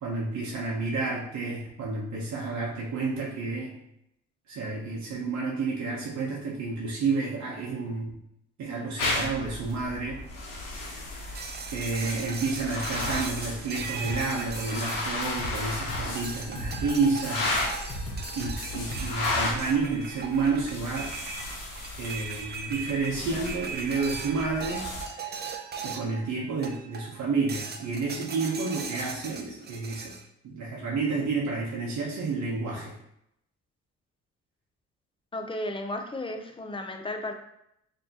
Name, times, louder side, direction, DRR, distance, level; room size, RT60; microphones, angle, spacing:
voice 1, 0.0-3.8 4.5-8.1 8.6-10.2 10.8-11.0 11.7-17.5 18.4-21.1 22.0-25.4 25.8-30.1 30.4-33.0, right 4 dB, 70° right, -4 dB, 0.8 m, -30 dB
sound 1, 9.0-25.0, left 2 dB, 90° left, 0.9 m, -35 dB
sound 2, 11.3-15.7 16.2-26.2 26.6-27.1 27.5-30.2, right 5 dB, 35° right, 0.5 m, -39 dB
sound 3, 11.7-19.3, left 1 dB, 55° left, 1.4 m, -38 dB
voice 2, 35.3-37.3, left 1 dB, 15° left, 5 dB, 0.5 m, -34 dB
4.2 x 2.8 x 2.8 m, 0.77 s
cardioid pair, 90°, 30 cm